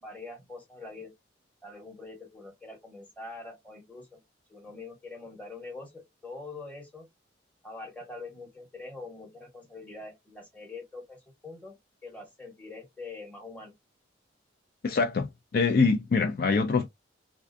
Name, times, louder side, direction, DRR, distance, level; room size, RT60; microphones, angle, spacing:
voice 1, 0.0-1.1 1.6-4.2 4.5-7.1 7.6-11.8 12.0-13.7, left 3 dB, 10° left, 1.0 m, -44 dB
voice 2, 14.8-16.9, left 4 dB, 50° left, 0.4 m, -24 dB
2.4 x 2.3 x 2.5 m
head